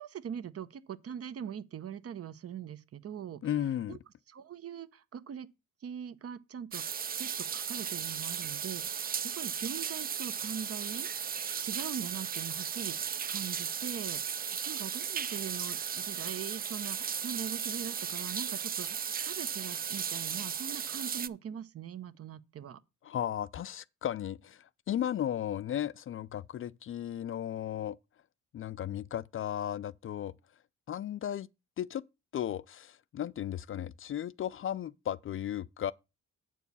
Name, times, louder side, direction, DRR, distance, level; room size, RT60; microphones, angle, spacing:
voice 1, 0.0-3.4 3.9-4.0 4.3-5.5 5.8-6.8 7.2-22.8, right 8 dB, 50° right, 0.8 m, -42 dB
voice 2, 3.4-4.0 23.0-28.0 28.5-30.3 30.9-31.5 31.8-32.0 32.3-35.9, left 10 dB, 45° left, 0.4 m, -35 dB
sound 1, 6.7-21.3, right 7 dB, 30° right, 0.5 m, -36 dB
8.1 x 4.6 x 6.9 m
cardioid pair, 90°, 30 cm